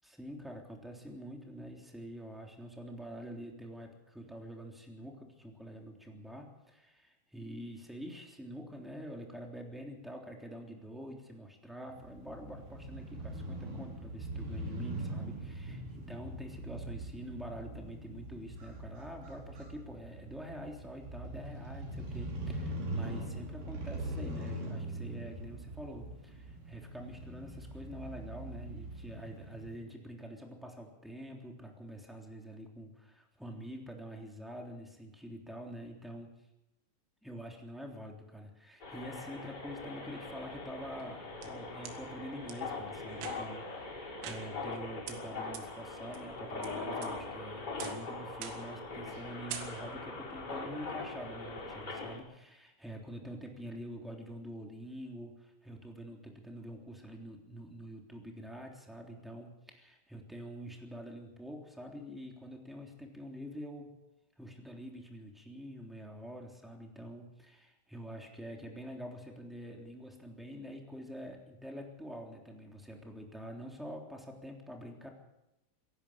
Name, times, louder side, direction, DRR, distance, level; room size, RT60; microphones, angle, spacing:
voice 1, 0.2-36.3 37.2-63.9 64.4-75.1, equal, ahead, 1 dB, 2.0 m, -46 dB
Crow / Motorcycle, 11.9-29.8, right 1 dB, 70° right, 7.5 m, -42 dB
sound 1, 38.8-52.2, left 3 dB, 20° left, 6.2 m, -41 dB
sound 2, 41.0-42.0 42.5-42.6 43.1-43.6 44.2-44.8 45.1-45.2 45.5-45.6 46.1-46.7 47.0-47.4 47.8-48.1 48.4-48.8 49.1-49.2 49.5-50.1, right 9 dB, 85° right, 4.5 m, -45 dB
26.0 x 11.5 x 8.7 m, 0.92 s
omnidirectional pair, 5.8 m